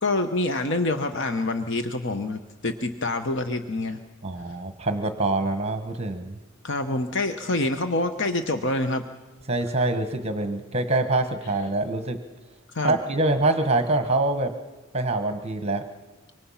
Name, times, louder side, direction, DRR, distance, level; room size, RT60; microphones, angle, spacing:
voice 1, 0.0-4.0 6.6-9.0 12.7-13.0, left 2 dB, 60° left, 7 dB, 1.1 m, -26 dB
voice 2, 4.2-6.4 9.5-12.2 12.8-14.5 14.9-15.8, right 2 dB, 30° right, 7 dB, 1.3 m, -25 dB
25.0 x 24.0 x 5.7 m, 1.2 s
head